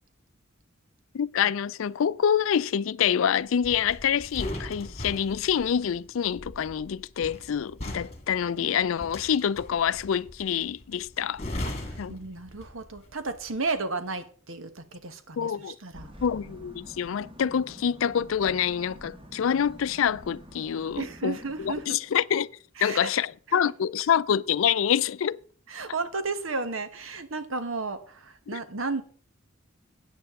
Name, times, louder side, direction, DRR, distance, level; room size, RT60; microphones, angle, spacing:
voice 1, 1.1-11.4 12.0-12.2 15.4-15.8 16.2-22.5 22.8-25.4 28.5-28.6, left 8 dB, 75° left, 0.4 m, -26 dB
sound 1, 3.6-13.0 13.3-13.6, left 1 dB, 35° left, 1.8 m, -39 dB
voice 2, 11.6-16.1 21.0-22.0 22.7-23.1 23.5-23.7 25.7-29.0, right 3 dB, 75° right, 1.2 m, -33 dB
sound 2, 15.9-21.8, equal, 25° right, 1.3 m, -47 dB
13.0 x 8.9 x 3.6 m
head